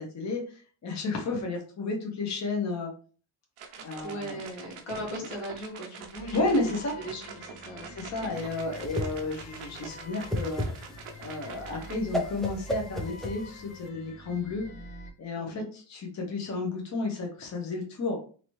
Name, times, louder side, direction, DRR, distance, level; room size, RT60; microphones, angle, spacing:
voice 1, 0.0-2.9 3.8-4.4 6.3-6.9 7.9-10.6 11.2-14.7 15.2-18.2, left 3 dB, 35° left, 0 dB, 0.8 m, -32 dB
sound 1, 3.6-12.0, right 6 dB, 80° right, 0.7 m, -45 dB
voice 2, 4.0-6.5 7.0-8.4 15.3-15.6, equal, 90° left, -1 dB, 1.5 m, -39 dB
sound 2, 6.1-15.1, left 1 dB, 70° left, 1.0 m, -47 dB
Whoosh swoosh swish, 8.4-13.9, equal, ahead, 0.3 m, -34 dB
2.9 x 2.7 x 3.0 m, 0.39 s
cardioid pair, 140°, 48 cm